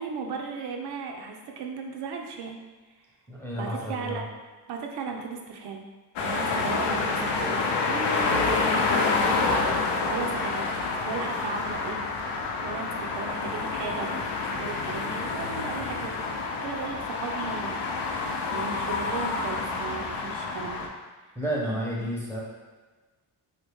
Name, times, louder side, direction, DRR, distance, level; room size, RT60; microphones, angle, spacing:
voice 1, 0.0-2.6 3.5-4.3 4.7-5.8 6.2-9.7 10.1-10.7 11.1-12.0 12.6-14.1 14.5-16.2 16.6-17.8 18.1-20.9 21.7-22.0, right 4 dB, 70° right, 2 dB, 0.6 m, -36 dB
voice 2, 3.3-4.2 21.4-22.4, equal, 5° left, -5 dB, 0.7 m, -31 dB
sound 1, 6.2-20.9, left 3 dB, 85° left, 0.6 m, -28 dB
3.7 x 2.8 x 3.5 m, 1.3 s
cardioid pair, 155°, 41 cm